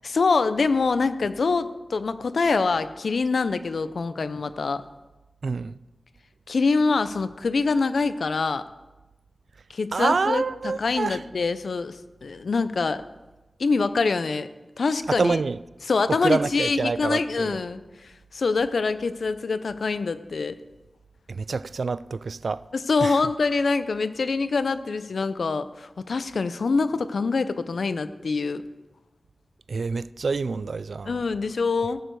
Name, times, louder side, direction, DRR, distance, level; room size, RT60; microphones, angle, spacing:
voice 1, 0.0-4.8 6.5-8.6 9.7-10.4 10.8-13.0 13.6-14.5 14.8-15.4 15.9-20.6 22.7-28.6 31.1-32.0, left 4 dB, 75° left, 0.6 m, -25 dB
voice 2, 5.4-5.8 9.9-11.2 15.1-15.6 16.1-17.6 21.3-22.6 23.0-23.2 29.7-31.2, right 4 dB, 75° right, 0.3 m, -27 dB
15.5 x 6.9 x 4.7 m
wide cardioid pair, 70°, 0 cm